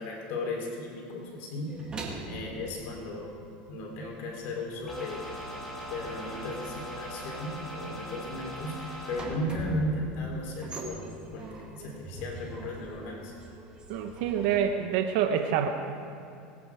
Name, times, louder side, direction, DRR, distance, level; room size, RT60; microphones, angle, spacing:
voice 1, 0.0-1.9 2.3-3.3 3.7-5.3 5.9-13.3, left 1 dB, 60° left, -1 dB, 3.7 m, -35 dB
sound 1, 1.7-3.9 4.1-14.7, right 2 dB, 20° right, 2.2 m, -43 dB
sound 2, 4.9-9.3, equal, 5° left, 4.2 m, -40 dB
voice 2, 13.9-15.7, right 8 dB, 70° right, 6 dB, 0.9 m, -27 dB
20.5 x 9.4 x 4.8 m, 2.5 s
supercardioid pair, 125°, 4 cm